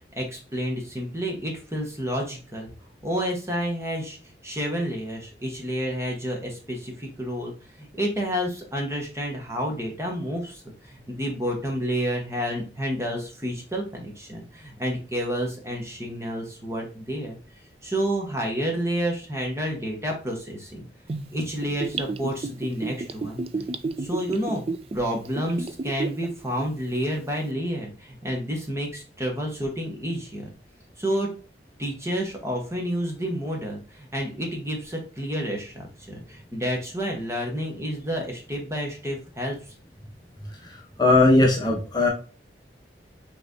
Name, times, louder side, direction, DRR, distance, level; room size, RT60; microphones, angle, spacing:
voice 1, 0.2-2.7 3.0-4.2 4.4-7.5 7.8-17.4 17.8-20.8 21.3-23.4 24.0-24.6 24.9-30.5 31.0-31.3 31.8-39.6, equal, 15° right, 1 dB, 1.3 m, -29 dB
Gurgling / Bathtub (filling or washing), 21.1-26.2 26.6-26.7, right 3 dB, 35° right, 0.4 m, -31 dB
voice 2, 40.6-42.1, left 2 dB, 25° left, 0 dB, 0.9 m, -19 dB
5.7 x 3.4 x 2.7 m, 0.36 s
head